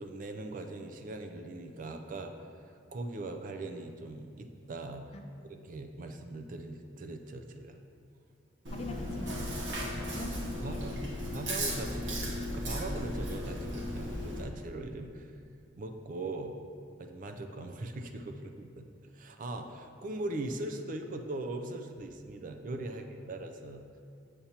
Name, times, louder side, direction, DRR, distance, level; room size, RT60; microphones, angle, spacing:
voice 1, 0.0-2.3 2.9-5.1 5.4-7.8 10.6-11.0 11.3-15.3 15.8-16.5 17.0-18.9 19.1-23.8, right 2 dB, 45° right, 6 dB, 0.4 m, -40 dB
Chewing mastication, 8.6-14.4, equal, 75° right, 1.1 m, -36 dB
voice 2, 8.7-11.1 22.9-23.0, left 1 dB, 35° left, 4 dB, 0.5 m, -45 dB
7.2 x 6.6 x 2.9 m, 2.4 s
head